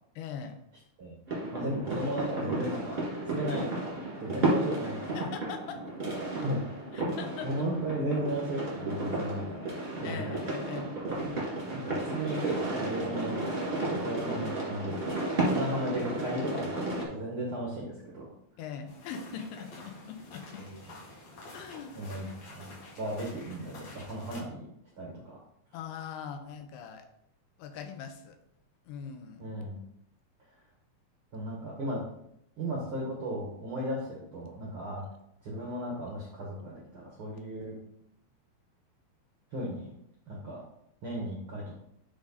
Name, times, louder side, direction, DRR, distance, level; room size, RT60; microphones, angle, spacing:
voice 1, 0.2-0.6 5.1-5.8 6.9-7.5 10.0-10.9 18.6-20.7 21.5-22.0 25.7-27.1 27.6-28.4 28.9-29.5, left 7 dB, 80° left, 6 dB, 2.8 m, -41 dB
sound 1, 1.3-17.0, right 2 dB, 25° right, 1.3 m, -33 dB
voice 2, 1.5-3.0 3.3-3.7 4.2-5.2 6.4-6.6 7.1-9.7 10.0-10.4 11.1-11.4 11.7-13.3 13.8-14.9 15.4-18.3 20.6-20.8 21.9-22.7 23.0-24.7 25.0-25.4 29.4-29.8 31.3-32.0 32.6-35.0 35.4-37.7 39.5-39.9 40.3-40.6 41.0-41.8, right 1 dB, 75° right, -3 dB, 1.2 m, -35 dB
sound 2, 18.9-24.4, left 2 dB, 50° left, 2.8 m, -49 dB
9.6 x 3.7 x 4.1 m, 0.75 s
omnidirectional pair, 4.5 m